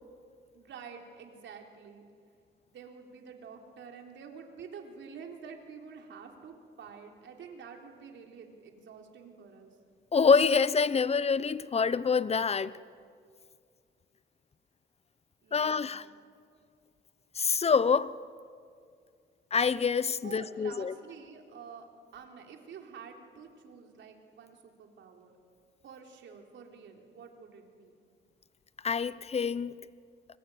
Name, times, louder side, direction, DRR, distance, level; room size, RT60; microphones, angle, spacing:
voice 1, 0.5-2.1 2.7-9.8 15.4-16.1 20.2-21.9 22.1-25.3 25.8-28.0, right 6 dB, 70° right, 3.9 m, -48 dB
voice 2, 10.1-12.7 15.5-16.0 17.4-18.1 19.5-20.9 28.8-29.8, left 5 dB, 30° left, 0.9 m, -26 dB
25.0 x 22.5 x 9.3 m
cardioid pair, 90°, 20 cm